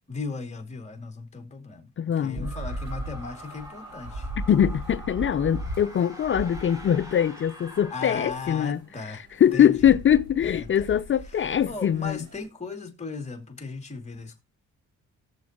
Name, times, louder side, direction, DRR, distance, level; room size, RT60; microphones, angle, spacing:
voice 1, 0.1-1.9 2.2-4.3 7.9-9.3 9.5-9.9 10.4-10.7 11.7-14.4, left 4 dB, 20° left, 2.7 m, -36 dB
voice 2, 2.0-2.6 4.5-12.3, left 9 dB, 40° left, 0.6 m, -23 dB
sound 1, 2.1-12.5, right 1 dB, 65° right, 6.1 m, -38 dB
sound 2, 2.4-8.8, left 1 dB, 10° right, 3.8 m, -45 dB
18.5 x 7.2 x 3.0 m
cardioid pair, 90°, 30 cm